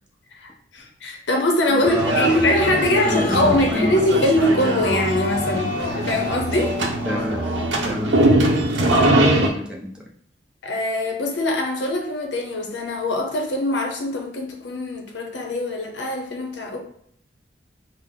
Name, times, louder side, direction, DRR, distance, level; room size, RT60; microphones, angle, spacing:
voice 1, 0.3-6.8 9.2-9.3 10.6-16.8, left 1 dB, 80° left, 2 dB, 0.7 m, -22 dB
sound 1, 1.7-8.0, left 1 dB, 15° left, 1.4 m, -33 dB
voice 2, 1.8-3.9 7.1-7.6 7.8-8.4 8.8-10.0, left 1 dB, 5° right, -3 dB, 0.6 m, -30 dB
sound 2, 1.9-9.5, right 1 dB, 85° right, 0.6 m, -22 dB
Growling, 2.4-9.1, left 4 dB, 50° left, 0.3 m, -33 dB
3.8 x 2.1 x 3.7 m, 0.67 s
head